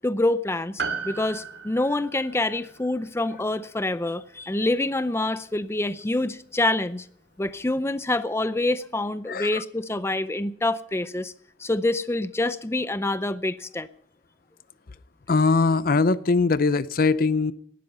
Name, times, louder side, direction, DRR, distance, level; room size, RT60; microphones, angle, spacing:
voice 1, 0.0-7.0 7.4-11.3 11.6-13.9, left 2 dB, 15° left, 0.6 m, -26 dB
Piano, 0.8-5.4 5.6-5.7, right 5 dB, 75° right, 2.6 m, -37 dB
voice 2, 9.3-9.6 15.3-17.5, left 4 dB, 55° left, 0.6 m, -21 dB
18.5 x 12.5 x 5.5 m
head